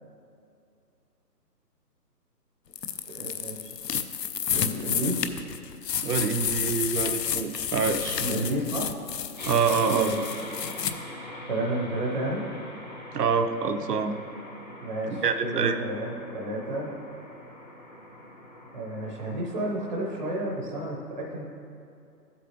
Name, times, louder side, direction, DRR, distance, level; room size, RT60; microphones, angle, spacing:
sound 1, 2.7-10.9, left 8 dB, 75° left, 0.7 m, -31 dB
voice 1, 3.1-3.7 4.5-5.2 8.2-8.8 9.9-10.2 11.5-12.4 14.8-16.9 18.7-21.4, right 1 dB, 30° right, -3 dB, 0.7 m, -31 dB
voice 2, 6.0-8.2 9.5-10.1 13.1-14.2 15.1-15.8, right 5 dB, 70° right, 8 dB, 0.8 m, -26 dB
sound 2, 9.4-20.6, left 1 dB, 30° left, 0.6 m, -43 dB
13.0 x 8.2 x 2.9 m, 2.6 s
hypercardioid pair, 160°, 50 cm